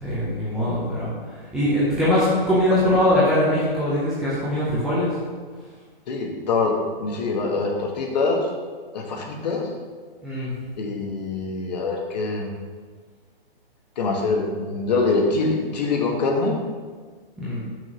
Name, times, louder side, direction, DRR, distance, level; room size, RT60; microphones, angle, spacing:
voice 1, 0.0-1.1 1.5-5.1 10.2-10.5 17.4-17.6, left 1 dB, ahead, -12 dB, 0.5 m, -21 dB
voice 2, 6.1-8.5 8.9-9.7 10.8-12.5 14.0-16.6, left 3 dB, 45° left, 1 dB, 1.2 m, -24 dB
6.2 x 3.7 x 5.8 m, 1.5 s
hypercardioid pair, 155°, 30 cm